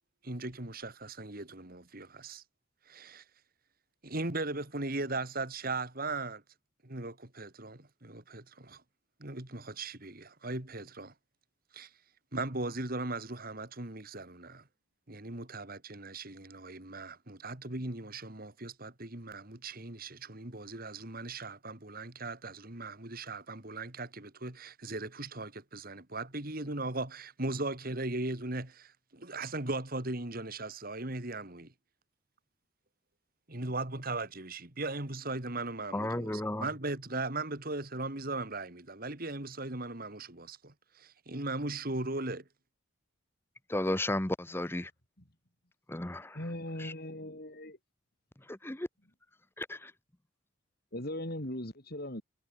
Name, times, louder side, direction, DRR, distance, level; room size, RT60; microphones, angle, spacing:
voice 1, 0.2-2.4 2.9-3.2 4.0-6.4 6.8-8.8 9.2-11.1 11.7-11.9 12.3-14.7 15.1-31.7 33.5-42.4, right 2 dB, 45° right, 2.6 m, -38 dB
voice 2, 35.9-36.7 43.7-44.9 45.9-46.2 46.8-46.9 48.5-48.9 49.6-49.9, left 1 dB, 10° left, 0.8 m, -33 dB
voice 3, 46.4-47.8 50.9-52.2, left 1 dB, 50° left, 4.7 m, -39 dB
head